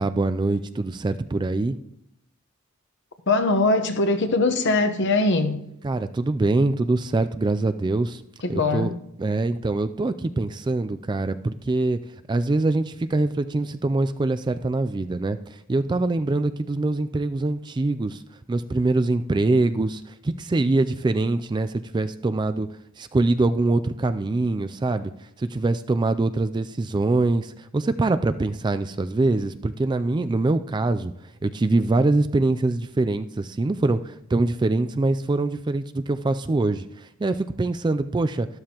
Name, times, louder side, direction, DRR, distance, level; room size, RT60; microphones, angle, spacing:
voice 1, 0.0-1.8 5.8-8.2 8.5-8.9 9.2-12.0 12.3-18.2 18.5-22.7 23.0-25.1 25.4-31.1 31.4-38.5, right 2 dB, 20° right, 11 dB, 0.3 m, -24 dB
voice 2, 3.3-5.7 8.4-8.9, left 2 dB, 55° left, 8 dB, 1.0 m, -21 dB
12.5 x 12.5 x 2.9 m, 0.76 s
head